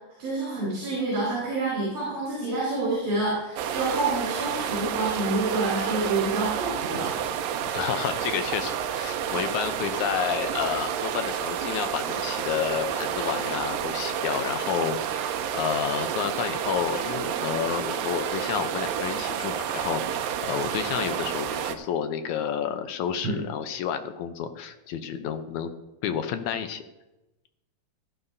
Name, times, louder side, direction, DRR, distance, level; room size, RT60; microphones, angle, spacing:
voice 1, 0.2-7.2, right 2 dB, 60° right, -7 dB, 5.6 m, -28 dB
sound 1, 3.6-21.8, right 9 dB, 80° right, 2.4 m, -30 dB
voice 2, 7.6-25.7 26.0-26.8, left 8 dB, 75° left, 8 dB, 1.8 m, -30 dB
17.0 x 11.5 x 2.7 m, 0.97 s
omnidirectional pair, 4.1 m